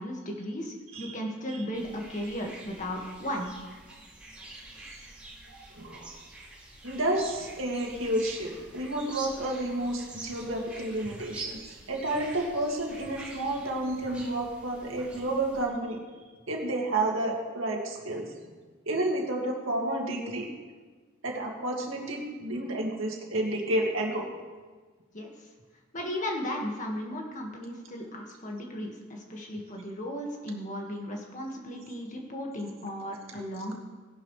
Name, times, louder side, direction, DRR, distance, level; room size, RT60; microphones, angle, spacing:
voice 1, 0.0-3.5 25.1-25.5 25.9-33.7, equal, 35° left, 0 dB, 1.8 m, -35 dB
sound 1, 1.7-15.6, right 2 dB, 5° right, 2.7 m, -46 dB
voice 2, 5.5-6.1 6.8-16.0 16.5-18.3 18.9-20.5 21.2-24.3, right 1 dB, 70° right, 0 dB, 2.2 m, -30 dB
17.0 x 11.0 x 3.3 m, 1.4 s
head